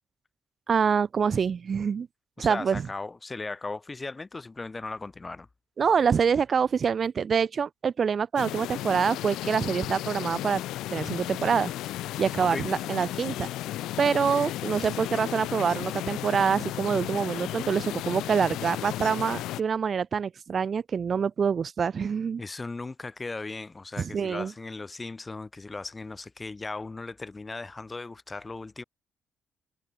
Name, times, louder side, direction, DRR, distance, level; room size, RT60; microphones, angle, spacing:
voice 1, 0.7-2.1 2.4-2.9 5.8-10.6 10.9-11.7 12.2-13.5 14.0-22.4 24.0-24.5, right 6 dB, 45° right, 1.2 m, -26 dB
voice 2, 2.4-5.5 12.5-12.6 22.4-28.8, left 3 dB, 25° left, 0.9 m, -37 dB
sound 1, 8.4-19.6, left 15 dB, 90° left, 0.5 m, -34 dB
cardioid pair, 90°, 0 cm